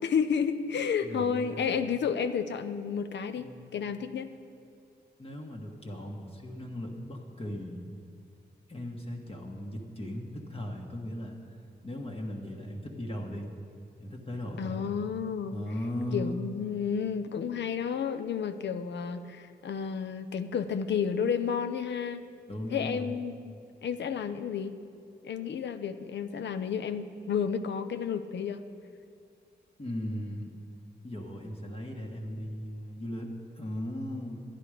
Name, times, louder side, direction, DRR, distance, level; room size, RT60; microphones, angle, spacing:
voice 1, 0.0-4.3 14.6-15.6 16.1-22.2 22.7-23.5 23.8-24.8 25.2-28.6, left 7 dB, 80° left, 10 dB, 0.6 m, -31 dB
voice 2, 1.0-1.7 3.4-3.6 5.2-7.8 8.7-11.3 11.8-13.5 14.0-14.9 15.5-16.4 22.5-23.2 29.8-30.5 31.0-34.4, left 1 dB, 35° left, 0 dB, 1.4 m, -37 dB
11.0 x 10.5 x 4.9 m, 2.3 s
cardioid pair, 75°, 18 cm